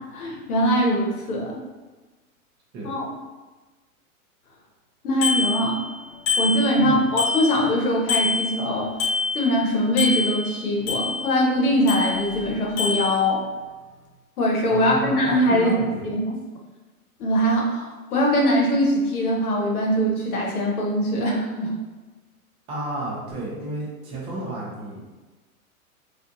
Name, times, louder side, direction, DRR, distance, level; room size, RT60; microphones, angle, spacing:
voice 1, 0.1-1.6 2.8-3.1 5.0-5.8 6.4-8.9 9.3-13.4 14.4-15.7 16.0-16.4 17.2-21.8, equal, 75° left, -1 dB, 1.0 m, -22 dB
Bicycle bell, 5.2-5.9 6.3-7.8 8.1-9.6 10.0-11.4 11.9-12.5 12.8-13.1, left 4 dB, 45° left, 1.4 m, -26 dB
voice 2, 14.7-16.1 22.7-25.0, right 2 dB, 15° right, -5 dB, 0.4 m, -32 dB
2.5 x 2.4 x 2.6 m, 1.2 s
hypercardioid pair, 125°, 44 cm